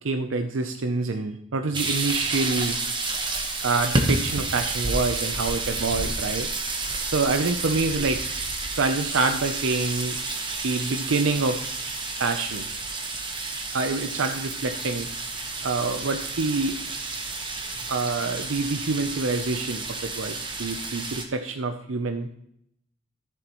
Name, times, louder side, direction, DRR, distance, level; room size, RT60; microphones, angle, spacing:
voice 1, 0.0-2.8 3.6-6.5 7.1-8.2 8.8-10.2 10.6-11.6 12.2-12.7 13.7-15.1 15.6-16.8 17.9-22.4, right 3 dB, 85° right, 7 dB, 0.6 m, -26 dB
sound 1, 1.7-21.3, right 3 dB, 25° right, 1.2 m, -30 dB
13.5 x 7.8 x 3.0 m, 0.74 s
head